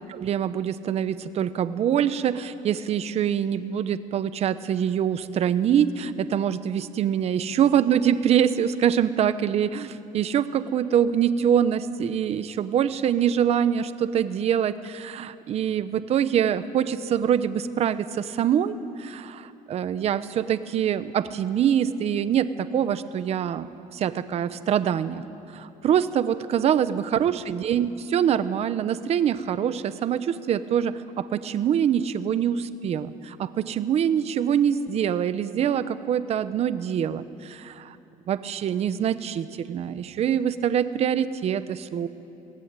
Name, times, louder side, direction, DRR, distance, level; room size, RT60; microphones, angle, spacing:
voice 1, 0.1-25.2 25.5-38.0 38.3-42.1, right 9 dB, 45° right, 13 dB, 0.8 m, -24 dB
23.0 x 18.0 x 9.0 m, 2.8 s
cardioid pair, 165°, 15 cm